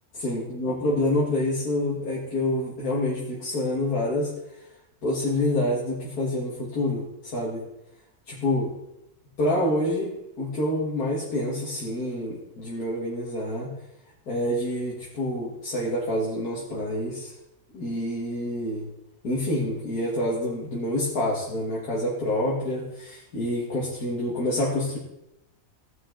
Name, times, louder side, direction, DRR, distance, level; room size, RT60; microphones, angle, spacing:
voice 1, 0.2-4.3 5.0-7.6 8.3-8.7 9.4-13.7 14.3-17.3 17.7-18.9 19.2-25.0, left 1 dB, 80° left, -6 dB, 2.4 m, -27 dB
16.0 x 6.0 x 3.8 m, 0.86 s
omnidirectional pair, 1.6 m